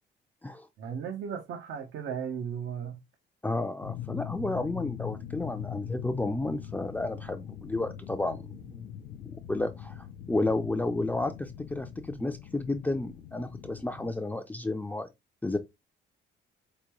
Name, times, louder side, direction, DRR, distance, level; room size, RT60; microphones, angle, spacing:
voice 1, 0.8-3.0, right 7 dB, 75° right, 0.8 m, -35 dB
voice 2, 3.4-8.9 9.5-15.1 15.4-15.6, left 2 dB, 10° left, 0.4 m, -32 dB
sound 1, 3.8-14.1, left 10 dB, 85° left, 0.5 m, -42 dB
5.0 x 2.2 x 3.0 m
cardioid pair, 90°, 20 cm